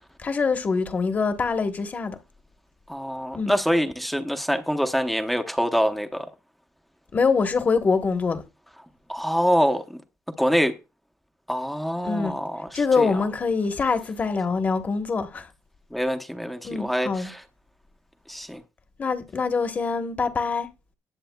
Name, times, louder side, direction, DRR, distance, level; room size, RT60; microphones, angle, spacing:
voice 1, 0.2-2.2 3.3-3.5 7.1-8.4 12.0-12.3 12.7-15.5 16.6-17.3 19.0-20.7, left 4 dB, 30° left, 1.1 m, -24 dB
voice 2, 2.9-6.3 9.1-9.8 10.4-10.7 11.5-13.2 15.9-17.4 18.3-18.6, equal, ahead, 0.8 m, -25 dB
18.0 x 7.6 x 2.2 m
cardioid pair, 150°, 6 cm